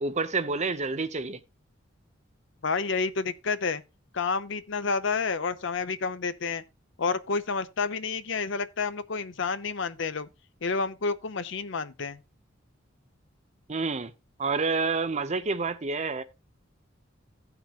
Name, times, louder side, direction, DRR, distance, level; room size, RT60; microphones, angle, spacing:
voice 1, 0.0-1.4 13.7-14.1 14.4-16.2, right 4 dB, 35° right, 0.7 m, -28 dB
voice 2, 2.6-3.8 4.1-6.6 7.0-10.3 10.6-12.2, left 4 dB, 65° left, 0.7 m, -29 dB
16.5 x 5.9 x 2.4 m
head